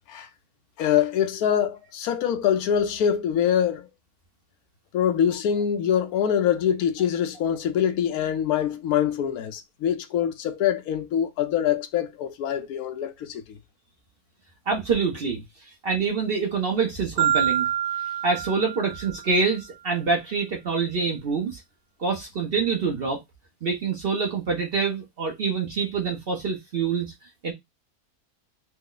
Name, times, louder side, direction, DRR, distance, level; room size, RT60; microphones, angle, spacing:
voice 1, 0.8-3.9 4.9-13.6, left 9 dB, 75° left, 1.0 m, -24 dB
voice 2, 14.7-17.7 18.2-21.6 22.0-23.2 23.6-27.1 27.4-27.5, right 5 dB, 50° right, 0.7 m, -26 dB
Marimba xylophone, 17.2-19.4, right 10 dB, 85° right, 1.2 m, -26 dB
3.1 x 2.0 x 3.7 m
omnidirectional pair, 1.6 m